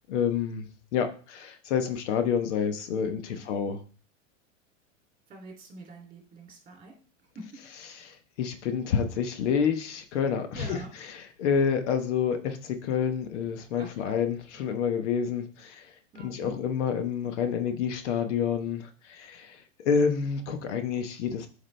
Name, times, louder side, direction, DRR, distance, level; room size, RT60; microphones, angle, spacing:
voice 1, 0.1-3.8 7.9-15.9 16.2-21.5, left 7 dB, 65° left, 8 dB, 1.1 m, -28 dB
voice 2, 5.3-7.0 7.3-7.6 10.5-10.9 13.8-14.1 16.1-16.5, right 2 dB, 20° right, 1 dB, 2.9 m, -44 dB
8.6 x 4.9 x 3.3 m, 0.39 s
hypercardioid pair, 115°, 38 cm